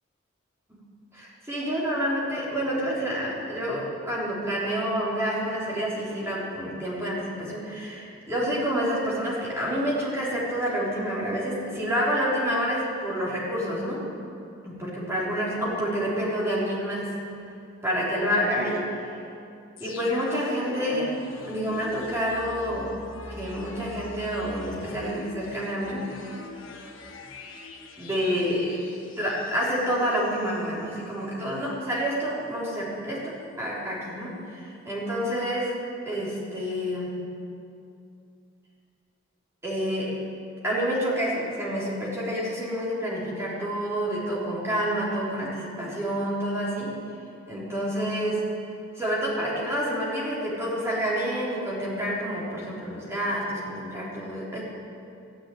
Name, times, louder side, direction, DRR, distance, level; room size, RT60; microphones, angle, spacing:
voice 1, 1.1-14.1 14.6-17.2 17.8-18.9 19.8-21.1 21.5-23.0 23.3-26.1 28.0-28.8 29.2-35.8 36.1-37.2 39.6-40.2 40.6-47.0 47.5-48.5 49.0-54.6, equal, 15° right, -7 dB, 3.8 m, -28 dB
sound 1, 19.8-30.6 30.9-31.0, left 2 dB, 80° left, 1.5 m, -42 dB
13.0 x 10.0 x 9.3 m, 2.6 s
head